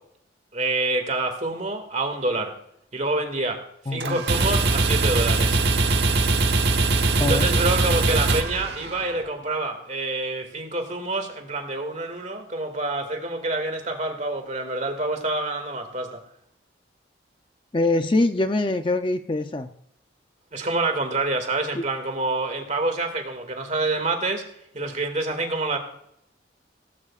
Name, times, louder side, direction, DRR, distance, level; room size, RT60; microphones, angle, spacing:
voice 1, 0.5-2.5 2.9-3.6 3.9-5.6 7.2-16.2 20.5-24.4 24.7-25.8, right 2 dB, 40° right, 5 dB, 2.2 m, -27 dB
voice 2, 3.9-4.2 7.1-7.5 17.7-19.7 21.8-21.9, left 2 dB, 25° left, 8 dB, 0.5 m, -23 dB
sound 1, 4.0-9.2, right 3 dB, 60° right, 1.2 m, -21 dB
17.5 x 15.0 x 2.5 m, 0.74 s
head